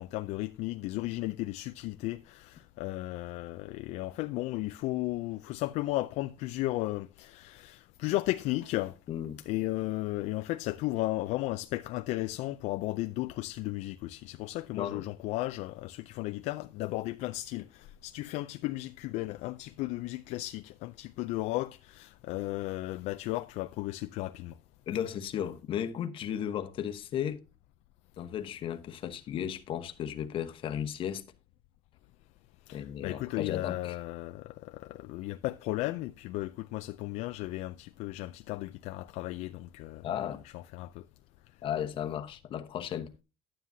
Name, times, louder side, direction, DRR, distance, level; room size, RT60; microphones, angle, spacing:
voice 1, 0.0-8.9 9.5-24.5 32.7-40.3 40.5-41.0, left 18 dB, 65° left, 0.4 m, -35 dB
voice 2, 9.1-9.4 14.7-15.1 24.9-27.4 28.2-31.2 32.7-34.0 40.0-40.4 41.6-43.1, left 9 dB, 45° left, 1.0 m, -35 dB
11.5 x 9.5 x 2.7 m
cardioid pair, 150°, 13 cm